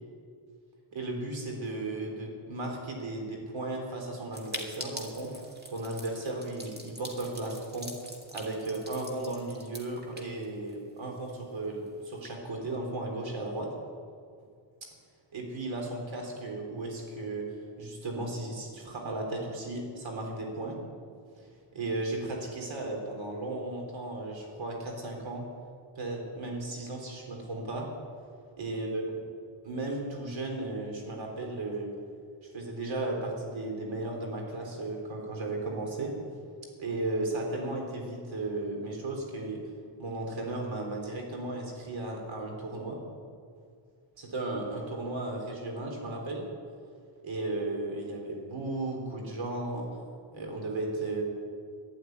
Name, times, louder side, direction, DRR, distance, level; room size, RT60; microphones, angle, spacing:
voice 1, 0.9-7.9 8.3-13.7 15.3-17.5 17.8-20.8 21.4-25.5 26.0-27.9 28.6-29.0 29.7-31.9 32.5-36.1 36.8-39.6 40.0-43.0 44.2-46.4 47.2-49.9 50.3-51.2, right 2 dB, 70° right, 1 dB, 3.9 m, -35 dB
sound 1, 4.3-11.0 11.3-11.4 11.6-11.7 12.0-12.3, right 1 dB, 20° right, 2.2 m, -44 dB
12.0 x 11.0 x 9.6 m, 2.2 s
wide cardioid pair, 115°, 48 cm